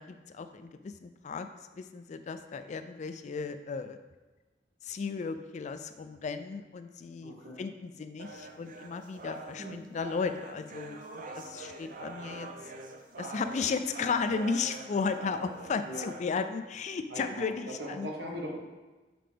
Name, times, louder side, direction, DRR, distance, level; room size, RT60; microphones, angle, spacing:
voice 1, 0.0-1.5 1.7-4.0 4.8-12.5 13.2-18.1, left 5 dB, 40° left, 9 dB, 0.3 m, -35 dB
voice 2, 7.2-7.6 9.6-9.8 15.8-16.1 17.1-17.5 17.8-18.6, equal, 70° right, -2 dB, 1.4 m, -39 dB
sound 1, 8.2-16.2, right 3 dB, 50° right, 0.6 m, -44 dB
7.6 x 5.0 x 3.4 m, 1.2 s
head